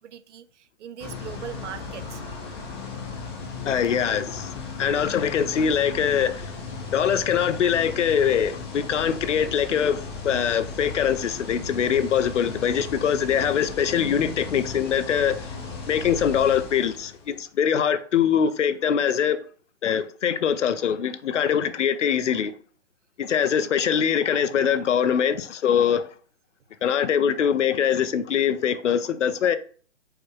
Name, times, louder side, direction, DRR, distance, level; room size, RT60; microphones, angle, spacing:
voice 1, 0.0-2.2 23.8-24.1, right 10 dB, 75° right, 0.5 m, -40 dB
sound 1, 1.0-17.4, left 4 dB, 20° left, 0.5 m, -36 dB
voice 2, 3.7-6.5 6.9-15.5 15.9-19.4 19.8-22.5 23.2-26.1 26.8-29.6, left 8 dB, 85° left, 0.6 m, -23 dB
4.8 x 2.0 x 4.7 m
hypercardioid pair, 140°, 36 cm